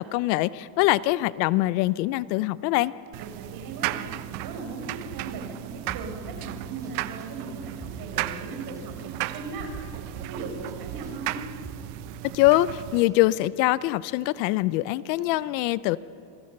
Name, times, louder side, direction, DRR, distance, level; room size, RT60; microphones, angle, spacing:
voice 1, 0.0-2.9 12.3-16.0, left 17 dB, 80° left, 17 dB, 0.8 m, -23 dB
sound 1, 3.1-13.0, right 17 dB, 60° right, 0.9 m, -35 dB
voice 2, 3.2-9.7 10.1-11.4, right 3 dB, 45° right, 3 dB, 5.9 m, -38 dB
Drum kit, 5.9-6.4 6.8-6.9 7.2-8.4 8.8-8.9 9.2-10.3 10.7-10.8 11.0-12.2 12.6-13.5, right 2 dB, 5° right, 4.3 m, -45 dB
27.0 x 22.5 x 6.7 m, 2.6 s
cardioid pair, 160°, 50 cm